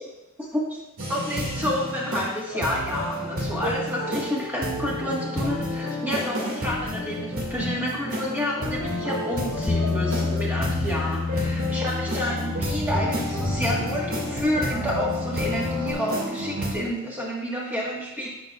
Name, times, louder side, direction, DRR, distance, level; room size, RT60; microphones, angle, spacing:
voice 1, 0.4-0.8 1.1-18.3, equal, 10° right, -4 dB, 1.3 m, -29 dB
sound 1, 1.0-16.7, equal, 75° right, 1.9 m, -30 dB
Bass guitar, 9.7-15.9, left 4 dB, 20° left, 0.3 m, -30 dB
9.1 x 5.2 x 2.3 m, 0.92 s
head